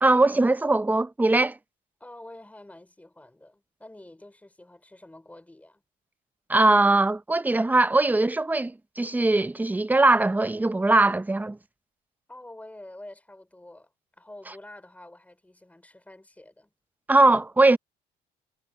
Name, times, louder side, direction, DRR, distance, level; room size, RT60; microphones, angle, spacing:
voice 1, 0.0-1.6 6.5-11.6 17.1-17.8, right 2 dB, 10° right, 0.8 m, -21 dB
voice 2, 2.0-5.8 12.3-16.7, left 1 dB, 10° left, 4.9 m, -47 dB
cardioid pair, 110°, 17 cm